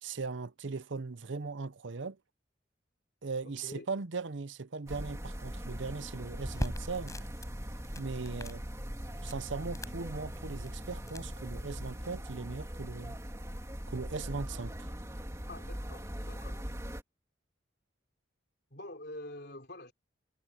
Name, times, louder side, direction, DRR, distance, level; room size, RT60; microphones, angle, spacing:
voice 1, 0.0-2.2 3.2-7.2 8.0-8.6 9.2-13.2 13.9-14.9, right 4 dB, 80° right, 0.8 m, -39 dB
voice 2, 3.4-3.9 15.5-16.6 18.7-19.9, left 1 dB, 55° left, 3.8 m, -46 dB
sound 1, 4.9-17.0, equal, 15° right, 2.9 m, -41 dB
sound 2, 6.4-11.9, equal, 15° left, 5.2 m, -43 dB
head